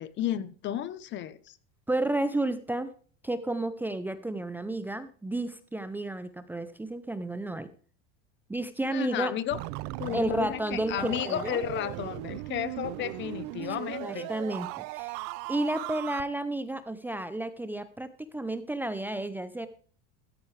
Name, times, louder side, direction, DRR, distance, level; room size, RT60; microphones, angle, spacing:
voice 1, 0.0-1.6 8.9-9.6 10.0-14.3, left 11 dB, 35° left, 17 dB, 0.7 m, -33 dB
voice 2, 1.9-2.9 3.2-7.7 8.5-9.3 10.1-11.6 13.6-15.2 15.5-19.7, right 2 dB, 5° right, 12 dB, 0.6 m, -32 dB
sound 1, 9.5-16.2, right 20 dB, 55° right, 0.5 m, -38 dB
14.0 x 9.5 x 3.3 m, 0.43 s
supercardioid pair, 135°, 32 cm